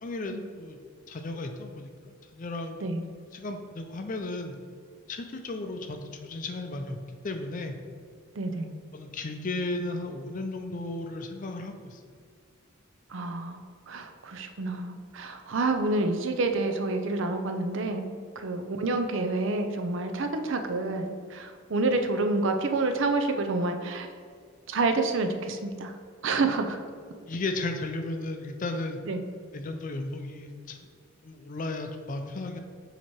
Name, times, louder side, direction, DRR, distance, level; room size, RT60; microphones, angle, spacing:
voice 1, 0.0-0.8 1.1-2.9 3.3-4.6 5.1-7.8 8.9-12.0 26.4-26.6 27.3-29.0 29.5-30.9 31.2-32.6, left 2 dB, 40° left, 5 dB, 0.5 m, -35 dB
voice 2, 8.4-8.7 13.1-13.6 13.9-18.1 18.4-24.1 24.7-25.9 26.2-26.8 29.1-29.2, right 3 dB, 60° right, 6 dB, 0.5 m, -28 dB
7.2 x 2.9 x 4.5 m, 2.1 s
head